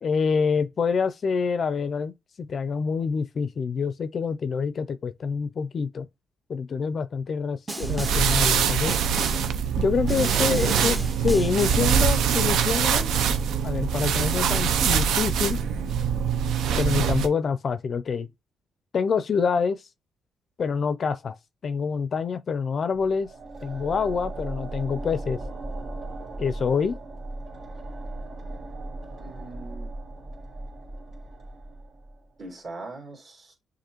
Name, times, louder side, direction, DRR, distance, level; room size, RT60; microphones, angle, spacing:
voice 1, 0.0-6.1 6.5-9.0 9.8-13.1 13.6-15.6 16.8-18.3 18.9-19.8 20.6-21.4 21.6-23.3 23.6-25.4 26.4-27.0, left 5 dB, 45° left, 0.4 m, -26 dB
Snare drum, 7.7-8.4 8.9-9.6 10.1-12.0, right 2 dB, 20° right, 0.8 m, -34 dB
sound 1, 7.8-17.3, right 7 dB, 80° right, 0.6 m, -23 dB
voice 2, 10.3-10.8 29.2-29.9 32.4-33.6, right 2 dB, 40° right, 2.1 m, -41 dB
sound 2, 22.9-32.3, right 2 dB, 65° right, 1.7 m, -37 dB
6.6 x 2.5 x 3.0 m
cardioid pair, 105°, 0 cm